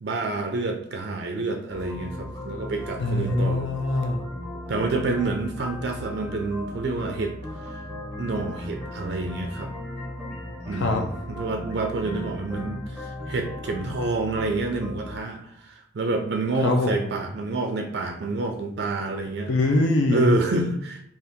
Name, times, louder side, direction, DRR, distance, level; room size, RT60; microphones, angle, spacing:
voice 1, 0.0-3.7 4.7-7.3 7.6-7.8 8.2-9.7 10.7-19.5 20.1-21.0, right 3 dB, 55° right, 3 dB, 0.4 m, -28 dB
sound 1, 1.7-15.2, left 1 dB, 10° left, 0.7 m, -37 dB
voice 2, 3.0-4.2 10.7-11.0 16.6-17.1 19.5-20.4, left 2 dB, 70° left, 3 dB, 0.4 m, -23 dB
2.7 x 2.4 x 3.5 m, 0.73 s
head